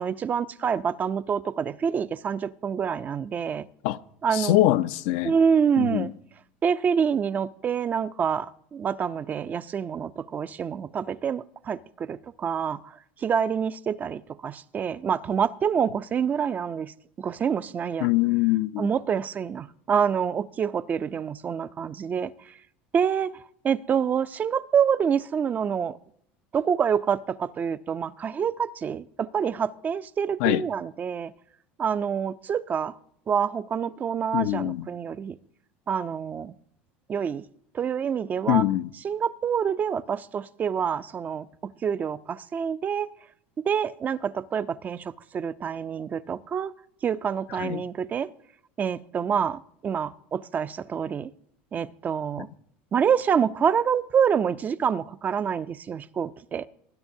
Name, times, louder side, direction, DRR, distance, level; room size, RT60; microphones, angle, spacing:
voice 1, 0.0-3.7 4.2-4.6 5.2-6.1 6.6-12.8 13.2-18.1 18.8-22.3 22.9-23.4 23.6-25.9 26.5-31.3 31.8-32.9 33.3-35.4 35.9-36.5 37.1-37.4 37.7-38.6 39.0-41.5 41.8-43.1 43.7-46.7 47.0-48.3 48.8-51.3 51.7-52.5 52.9-56.7, right 7 dB, 30° right, 0.4 m, -27 dB
voice 2, 4.3-5.3 5.8-6.1 18.0-18.9 30.4-30.6 34.3-34.9 38.5-38.9 47.6-47.8, left 16 dB, 75° left, 0.4 m, -23 dB
19.5 x 10.5 x 2.7 m
supercardioid pair, 105°, 6 cm